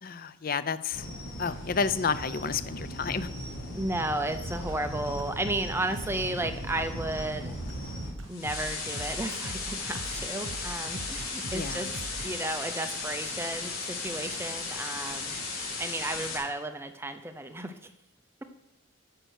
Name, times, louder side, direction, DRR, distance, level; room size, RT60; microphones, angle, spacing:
voice 1, 0.0-1.1 1.4-3.3 11.5-11.9, left 5 dB, 40° left, 14 dB, 0.5 m, -30 dB
sound 1, 0.9-8.1, equal, 65° left, 3.2 m, -39 dB
voice 2, 3.7-7.6 8.3-11.9 12.2-15.4 15.8-17.7, right 1 dB, 10° right, 8 dB, 0.6 m, -33 dB
sound 2, 4.4-12.3, right 1 dB, 70° right, 1.2 m, -41 dB
sound 3, 8.3-16.4, left 4 dB, 90° left, 3.9 m, -35 dB
10.5 x 6.7 x 6.4 m, 0.86 s
head